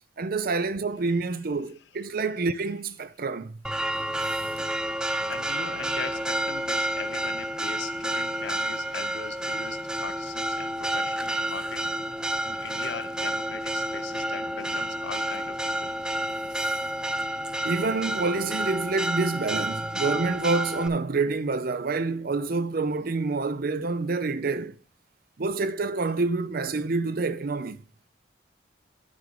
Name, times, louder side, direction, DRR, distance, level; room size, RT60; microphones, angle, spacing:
voice 1, 0.2-3.6 4.6-4.7 16.5-16.8 17.6-24.7 25.4-27.8, right 3 dB, 50° right, 0.6 m, -27 dB
Church bell, 3.6-20.9, right 1 dB, 5° right, 0.4 m, -30 dB
voice 2, 5.3-11.9 12.4-16.0, left 7 dB, 60° left, 0.4 m, -40 dB
9.7 x 6.8 x 3.8 m
head